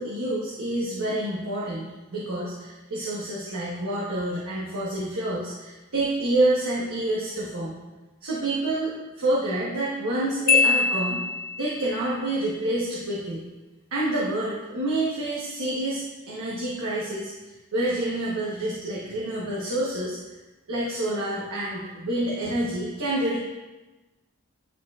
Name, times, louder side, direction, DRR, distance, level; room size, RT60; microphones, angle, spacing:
voice 1, 0.0-7.7 8.2-11.2 11.6-13.4 13.9-20.2 20.7-23.4, right 1 dB, 85° right, -7 dB, 1.1 m, -28 dB
Marimba xylophone, 10.5-11.9, left 5 dB, 45° left, 0.3 m, -23 dB
10.0 x 4.2 x 2.4 m, 1.1 s
head